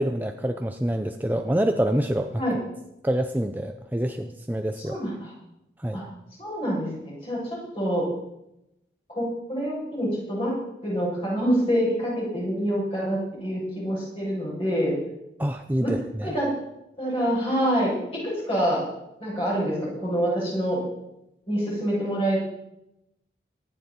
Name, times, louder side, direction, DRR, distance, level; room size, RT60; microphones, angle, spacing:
voice 1, 0.0-2.4 3.0-5.0 5.8-6.0 15.4-16.3, right 1 dB, 10° right, 6 dB, 0.6 m, -26 dB
voice 2, 4.8-5.3 5.9-6.1 6.4-8.1 9.1-10.6 10.8-15.0 15.8-16.5 17.0-18.8 19.2-20.8 21.5-22.4, equal, 30° left, -5 dB, 7.5 m, -26 dB
24.0 x 10.5 x 4.4 m, 0.88 s
head